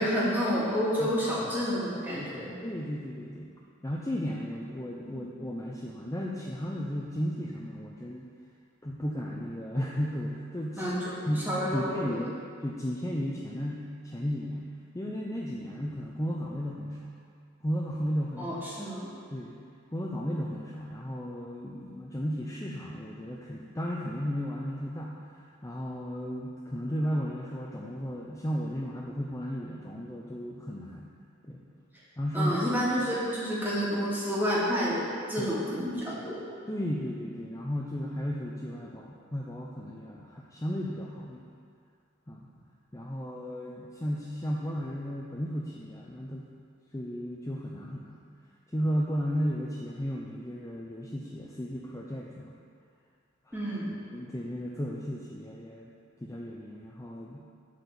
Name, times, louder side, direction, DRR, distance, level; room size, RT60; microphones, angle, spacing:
voice 1, 0.0-2.5 5.0-5.2 10.8-12.2 18.4-19.1 32.3-36.4 53.5-53.9, equal, 10° right, -8 dB, 2.5 m, -29 dB
voice 2, 2.6-3.5 3.8-8.3 8.8-10.8 11.3-17.1 17.6-18.6 19.3-19.5 19.9-31.1 31.4-31.6 32.2-32.6 35.4-35.6 36.7-41.5 42.3-42.5 42.9-46.5 46.9-48.2 48.7-52.6 53.5-53.6 54.1-55.9 56.2-57.4, equal, 15° left, -3 dB, 0.6 m, -34 dB
12.0 x 4.6 x 6.9 m, 2.3 s
head